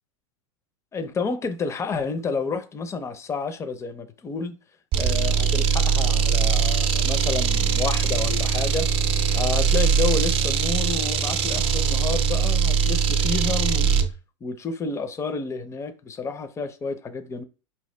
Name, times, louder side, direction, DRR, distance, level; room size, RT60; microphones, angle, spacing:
voice 1, 0.9-4.6 5.0-8.9 9.3-13.9 14.4-17.4, left 4 dB, 15° left, 0.5 m, -30 dB
sound 1, 4.9-14.1, right 6 dB, 35° right, 0.5 m, -21 dB
4.7 x 2.8 x 3.2 m
hypercardioid pair, 120°, 17 cm